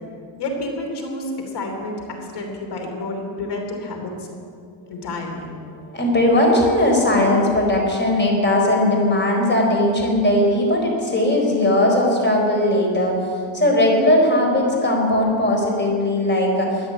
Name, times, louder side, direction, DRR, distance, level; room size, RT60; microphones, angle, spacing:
voice 1, 0.4-4.1 4.9-5.5, left 2 dB, 60° left, 3 dB, 3.2 m, -29 dB
voice 2, 5.7-16.9, left 1 dB, 25° left, 0 dB, 4.4 m, -18 dB
13.5 x 9.5 x 9.8 m, 2.3 s
cardioid pair, 120°, 46 cm